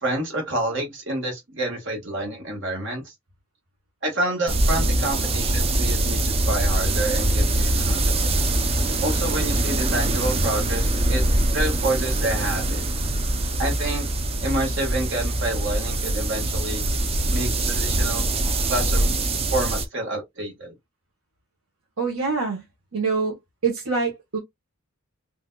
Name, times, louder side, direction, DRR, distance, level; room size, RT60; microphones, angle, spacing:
voice 1, 0.0-3.1 4.0-8.4 9.0-11.2 11.5-12.8 13.6-14.1 14.4-16.8 17.3-18.3 18.7-19.1 19.5-20.7, right 1 dB, 55° right, 1.5 m, -28 dB
sound 1, 4.5-19.9, right 1 dB, 25° right, 0.5 m, -23 dB
voice 2, 22.0-22.6 22.9-23.4 23.6-24.4, right 4 dB, 75° right, 1.0 m, -25 dB
3.8 x 2.6 x 2.2 m
head